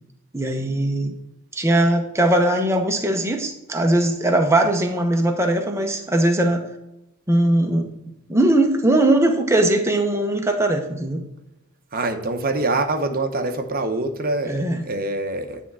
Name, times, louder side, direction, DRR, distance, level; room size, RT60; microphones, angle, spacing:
voice 1, 0.3-1.1 1.5-6.6 7.3-7.9 8.3-11.2 14.4-14.8, right 1 dB, 10° right, 3 dB, 0.9 m, -20 dB
voice 2, 11.9-15.6, right 2 dB, 40° right, 5 dB, 0.9 m, -25 dB
9.8 x 3.6 x 6.2 m, 0.93 s
head